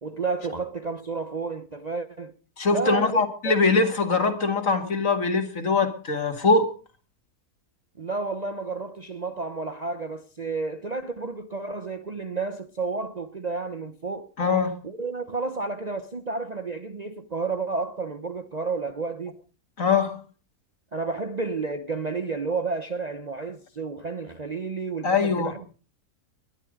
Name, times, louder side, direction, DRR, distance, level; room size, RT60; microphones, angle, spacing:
voice 1, 0.0-2.3 2.7-3.6 8.0-14.3 14.8-19.4 20.9-25.6, right 4 dB, 35° right, 0.8 m, -31 dB
voice 2, 2.6-6.7 14.4-14.7 19.8-20.2 25.0-25.5, left 4 dB, 55° left, 2.5 m, -22 dB
20.5 x 11.5 x 5.2 m
omnidirectional pair, 1.6 m